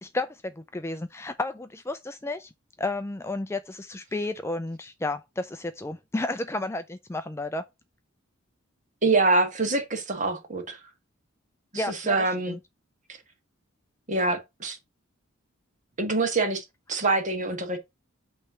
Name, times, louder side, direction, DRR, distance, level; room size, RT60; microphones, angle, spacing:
voice 1, 0.0-2.5 2.8-7.6 11.8-12.6, left 2 dB, 15° left, 0.4 m, -32 dB
voice 2, 9.0-10.8 11.7-12.5 14.1-14.8 16.0-17.8, right 3 dB, 35° right, 1.6 m, -25 dB
8.6 x 3.3 x 5.9 m
head